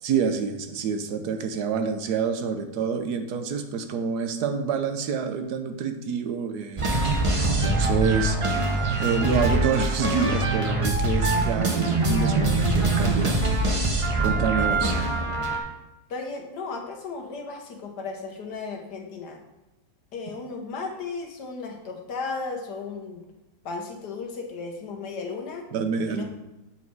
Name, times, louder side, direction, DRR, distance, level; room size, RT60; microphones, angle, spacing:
voice 1, 0.0-6.9 7.4-8.4 9.0-13.3 14.2-15.0 25.7-26.2, right 6 dB, 75° right, 7 dB, 1.2 m, -27 dB
sound 1, 6.8-15.6, right 2 dB, 30° right, 0.5 m, -23 dB
voice 2, 16.1-19.4 20.1-23.2 23.6-25.7 26.1-26.2, left 4 dB, 75° left, 2 dB, 1.7 m, -35 dB
7.3 x 4.2 x 4.6 m, 0.98 s
omnidirectional pair, 1.8 m